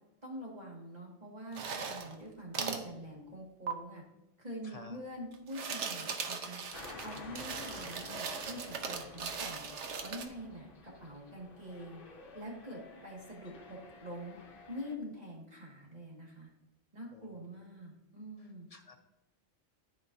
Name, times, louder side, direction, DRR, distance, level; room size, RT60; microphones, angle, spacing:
voice 1, 0.2-4.0 4.4-6.6 7.0-9.7 10.0-12.0 12.3-14.4 14.7-16.5 16.9-18.7, equal, 35° right, -3 dB, 2.1 m, -45 dB
sound 1, 1.5-2.2 2.5-2.9 3.7-3.8 5.3-10.3, right 5 dB, 75° right, 1.1 m, -39 dB
voice 2, 4.6-5.0 17.1-17.3 18.4-19.0, left 2 dB, 35° left, 4 dB, 0.9 m, -53 dB
sound 2, 6.7-14.9, left 3 dB, 50° left, 1.1 m, -52 dB
13.0 x 5.1 x 2.7 m, 0.94 s
omnidirectional pair, 1.2 m